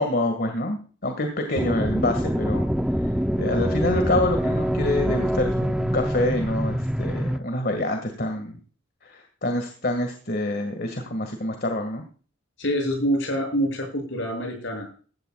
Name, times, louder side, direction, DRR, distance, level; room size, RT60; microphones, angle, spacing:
voice 1, 0.0-2.7 3.0-3.1 3.4-8.6 9.0-12.0, left 2 dB, 50° left, 5 dB, 1.9 m, -26 dB
sound 1, 1.5-7.4, equal, 5° right, 0.6 m, -25 dB
voice 2, 12.6-15.0, equal, 70° left, 3 dB, 7.6 m, -26 dB
16.0 x 14.5 x 2.4 m, 0.40 s
head